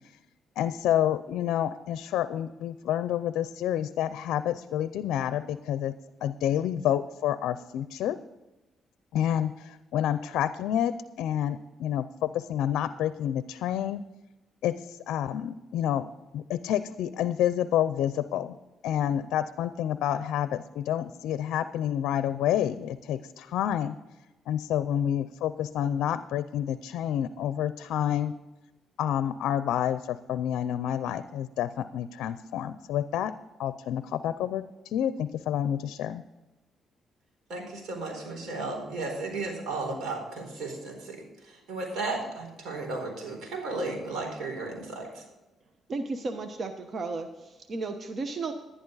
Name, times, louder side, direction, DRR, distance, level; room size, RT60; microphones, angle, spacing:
voice 1, 0.6-5.9 6.2-8.2 9.1-14.0 14.6-18.6 18.8-24.0 24.5-28.3 29.0-33.3 33.6-36.2, left 10 dB, 85° left, 13 dB, 0.5 m, -29 dB
voice 2, 37.5-45.2, right 3 dB, 70° right, 2 dB, 4.3 m, -34 dB
voice 3, 45.9-48.5, right 3 dB, 45° right, 6 dB, 1.0 m, -34 dB
11.0 x 11.0 x 4.0 m, 1.1 s
cardioid pair, 90°, 0 cm